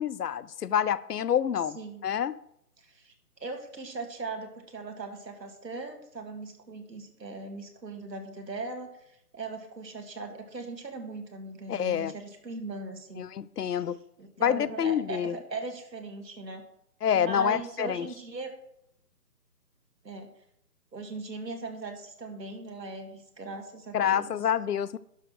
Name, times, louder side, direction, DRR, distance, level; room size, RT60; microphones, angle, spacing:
voice 1, 0.0-1.8 2.0-2.4 11.7-12.1 13.2-14.0 14.4-15.3 17.0-18.1 23.9-25.0, left 9 dB, 75° left, 0.6 m, -27 dB
voice 2, 2.8-3.1 3.4-8.9 9.3-13.3 13.6-13.8 14.2-16.7 17.1-18.5 20.0-20.3 20.9-24.3, right 3 dB, 90° right, 2.2 m, -39 dB
11.5 x 4.0 x 6.4 m
hypercardioid pair, 175°, 48 cm